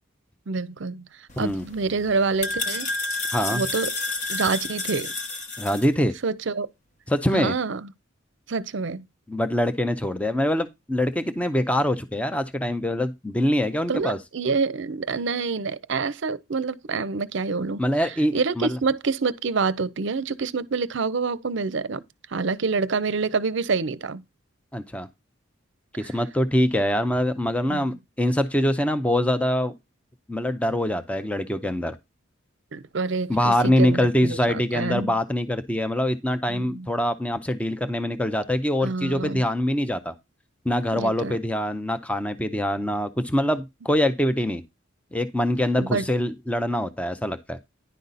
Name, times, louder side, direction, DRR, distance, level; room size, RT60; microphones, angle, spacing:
voice 1, 0.5-2.9 3.5-3.9 4.3-5.1 6.2-6.7 7.3-7.9 8.5-9.0 13.9-22.0 22.3-24.2 26.0-26.1 27.7-27.9 32.7-35.1 36.5-36.9 38.8-39.4 40.9-41.4 45.8-46.1, right 4 dB, 60° right, 0.5 m, -27 dB
sound 1, 1.3-5.9, left 2 dB, 35° left, 0.9 m, -30 dB
voice 2, 3.3-3.6 5.6-6.1 7.1-7.5 9.3-14.2 17.8-18.8 24.7-25.1 25.9-29.7 30.3-32.0 33.3-40.1 40.7-44.6 45.1-47.6, left 1 dB, 5° left, 0.4 m, -24 dB
10.0 x 5.2 x 4.0 m
head